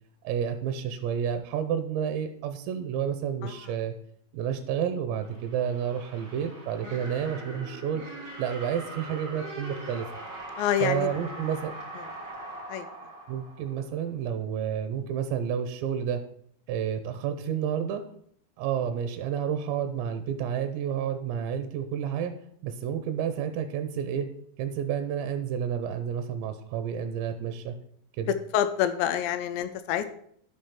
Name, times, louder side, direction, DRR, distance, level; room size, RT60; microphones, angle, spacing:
voice 1, 0.2-3.9 4.3-8.0 8.4-10.1 10.8-11.7 13.3-16.2 16.7-18.0 18.6-22.3 22.6-24.3 24.6-27.7 28.2-28.3, right 8 dB, 80° right, 8 dB, 2.8 m, -30 dB
sound 1, 5.2-14.1, right 2 dB, 35° right, 2.7 m, -41 dB
voice 2, 10.6-11.1 12.7-12.9 28.3-30.1, left 10 dB, 85° left, 10 dB, 2.7 m, -27 dB
11.5 x 5.5 x 5.8 m, 0.66 s
omnidirectional pair, 5.6 m